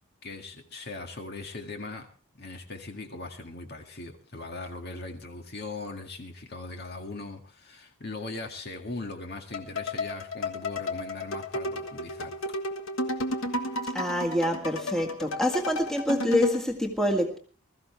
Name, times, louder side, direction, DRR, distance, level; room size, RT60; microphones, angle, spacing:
voice 1, 0.2-2.1 2.4-12.3, left 3 dB, 45° left, 2.0 m, -39 dB
sound 1, 9.5-16.7, left 1 dB, 65° left, 1.5 m, -33 dB
voice 2, 13.9-17.4, left 1 dB, ahead, 1.8 m, -26 dB
21.0 x 14.0 x 3.3 m
head